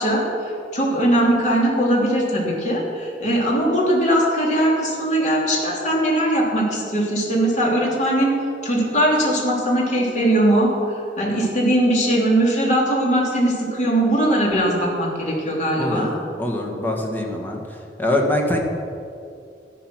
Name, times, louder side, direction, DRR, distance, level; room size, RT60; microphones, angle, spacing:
voice 1, 0.0-8.3 8.6-10.7 11.2-16.1, right 1 dB, 45° left, -2 dB, 3.2 m, -20 dB
voice 2, 15.8-16.1 16.4-17.6 18.0-18.6, left 1 dB, 10° left, 0 dB, 1.8 m, -23 dB
13.0 x 11.0 x 6.1 m, 2.5 s
head